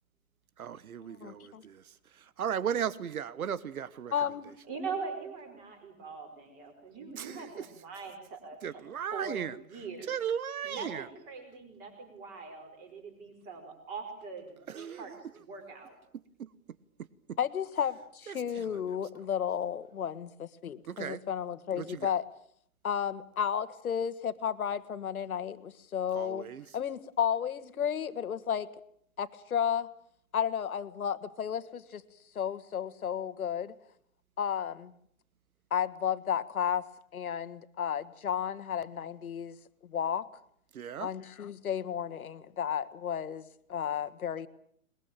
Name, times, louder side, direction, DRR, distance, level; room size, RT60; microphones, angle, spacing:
voice 1, 0.6-1.8 2.4-4.1 7.1-7.6 8.6-9.5 10.1-11.1 14.7-15.0 16.4-16.5 18.3-18.6 20.9-21.2 21.8-22.1 26.1-26.6 40.7-41.1, right 8 dB, 90° right, 18 dB, 1.3 m, -36 dB
voice 2, 1.2-1.6 4.1-4.5 17.4-22.3 22.8-28.7 29.2-29.9 30.3-32.0 32.4-33.7 34.4-34.9 35.7-36.9 37.1-39.6 39.8-40.3 41.0-44.5, left 8 dB, 90° left, 12 dB, 1.8 m, -33 dB
voice 3, 4.7-8.8 9.1-10.2 10.6-16.0, right 4 dB, 20° right, 5 dB, 5.1 m, -42 dB
22.0 x 21.5 x 8.9 m, 0.66 s
hypercardioid pair, 170°, 42 cm